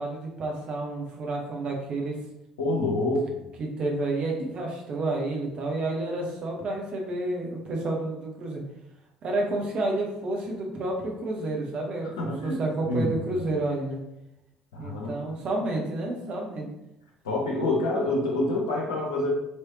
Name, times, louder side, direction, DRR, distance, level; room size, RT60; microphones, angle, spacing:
voice 1, 0.0-2.2 3.6-8.6 9.2-14.0 14.8-16.7, right 2 dB, 45° right, 0 dB, 0.8 m, -30 dB
voice 2, 2.6-3.4 12.0-13.4 14.7-15.2 15.7-15.8 17.2-19.3, left 2 dB, 70° left, -3 dB, 0.8 m, -27 dB
3.2 x 3.1 x 2.8 m, 0.86 s
figure-of-eight pair, 55°, 2 cm